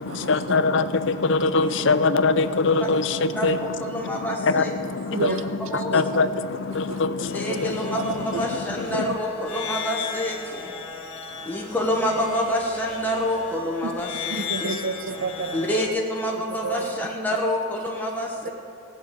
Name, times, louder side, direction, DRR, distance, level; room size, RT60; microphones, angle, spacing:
voice 1, 0.0-9.2, left 3 dB, 60° left, 0.5 m, -24 dB
voice 2, 3.8-4.7 5.7-5.9 7.3-10.7 11.4-14.8 15.5-18.5, equal, 10° left, 1.0 m, -27 dB
voice 3, 5.1-5.4 5.7-6.0 6.7-7.6 7.9-8.4 10.9-11.8 13.8-13.9 14.3-15.9 16.5-17.0 18.4-18.5, right 4 dB, 65° right, 0.6 m, -32 dB
sound 1, 7.2-15.9, left 6 dB, 80° left, 1.5 m, -35 dB
16.0 x 6.7 x 8.3 m
head